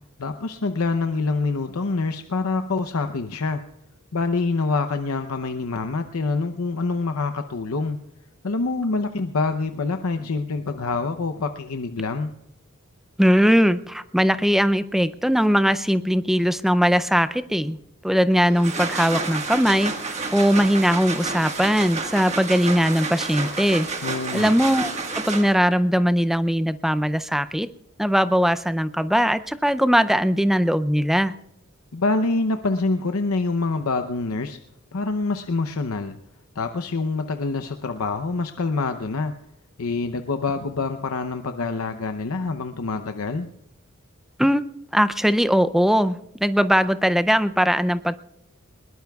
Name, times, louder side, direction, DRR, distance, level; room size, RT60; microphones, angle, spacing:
voice 1, 0.2-3.6 4.1-8.0 8.4-12.3 24.0-24.5 31.9-34.6 34.9-36.2 36.6-39.3 39.8-43.5, left 3 dB, 85° left, 7 dB, 0.7 m, -26 dB
voice 2, 13.2-17.8 18.0-23.9 24.3-24.9 25.2-27.7 28.0-31.3 44.4-44.7 44.9-48.2, equal, ahead, 13 dB, 0.4 m, -20 dB
sound 1, 18.4-25.8, right 4 dB, 30° right, 1.6 m, -30 dB
21.0 x 20.0 x 2.3 m, 0.83 s
head